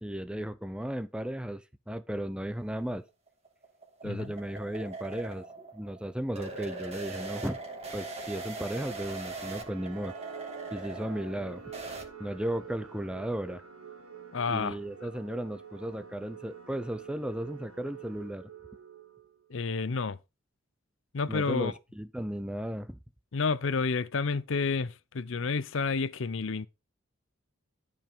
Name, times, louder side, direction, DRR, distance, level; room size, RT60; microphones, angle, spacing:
voice 1, 0.0-3.0 4.0-7.6 7.9-10.1 10.7-11.6 12.2-13.6 14.5-18.5 21.3-23.0, right 1 dB, 5° right, 0.5 m, -35 dB
sound 1, 3.1-12.1, right 3 dB, 30° right, 1.9 m, -41 dB
voice 2, 4.0-4.3 14.3-14.8 19.5-20.2 21.1-21.7 23.3-26.7, left 4 dB, 65° left, 0.6 m, -30 dB
sound 2, 9.3-19.5, right 6 dB, 85° right, 1.8 m, -47 dB
12.0 x 5.1 x 5.3 m
head